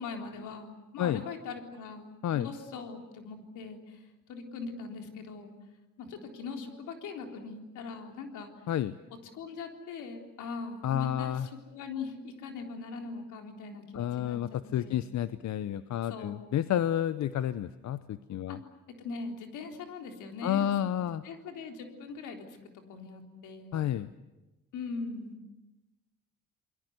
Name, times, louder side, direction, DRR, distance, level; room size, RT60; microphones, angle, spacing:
voice 1, 0.0-3.8 4.3-5.5 6.0-8.5 9.2-15.0 16.0-16.6 18.5-18.6 19.0-20.8 21.2-22.4 22.9-23.8 24.7-25.4, left 4 dB, 85° left, 4 dB, 3.7 m, -41 dB
voice 2, 10.8-11.5 13.9-18.6 20.4-21.2 23.7-24.1, left 11 dB, 65° left, 14 dB, 0.8 m, -30 dB
29.0 x 22.0 x 8.1 m, 1.1 s
cardioid pair, 90°, 30 cm